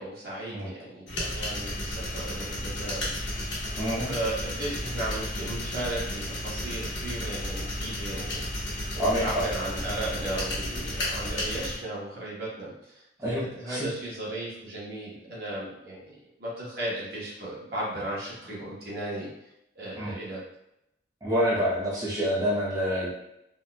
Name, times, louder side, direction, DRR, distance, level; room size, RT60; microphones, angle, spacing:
voice 1, 0.0-3.5 4.1-19.3 19.7-20.4, right 1 dB, 55° right, -6 dB, 1.0 m, -36 dB
sound 1, 1.1-11.8, left 1 dB, 85° left, 1.0 m, -33 dB
voice 2, 3.8-4.1 9.0-9.4 13.2-13.9 20.0-20.1 21.2-23.1, equal, 20° right, -8 dB, 0.8 m, -27 dB
4.3 x 2.2 x 2.2 m, 0.83 s
head